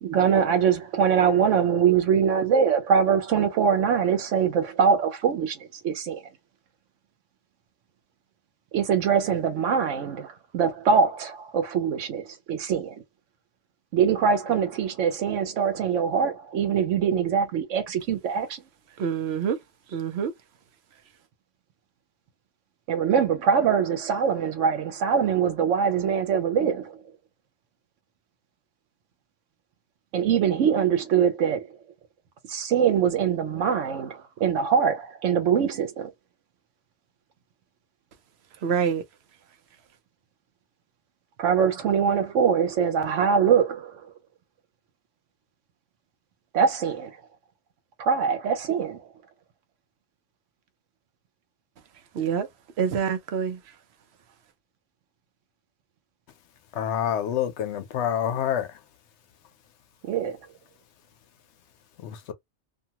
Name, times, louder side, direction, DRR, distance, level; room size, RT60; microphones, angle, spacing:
voice 1, 0.0-5.6 5.8-6.2 8.7-13.0 13.9-18.6 22.9-27.0 30.1-31.7 32.5-36.1 41.4-44.0 46.5-47.2 48.0-49.1 60.0-60.4, right 7 dB, 90° right, 1.0 m, -23 dB
voice 2, 19.0-19.6 19.9-20.3 38.6-39.0 52.1-52.5 52.8-53.6, right 7 dB, 65° right, 0.8 m, -26 dB
voice 3, 56.7-58.7 62.0-62.3, left 9 dB, 70° left, 0.9 m, -27 dB
2.6 x 2.2 x 2.8 m
omnidirectional pair, 1.2 m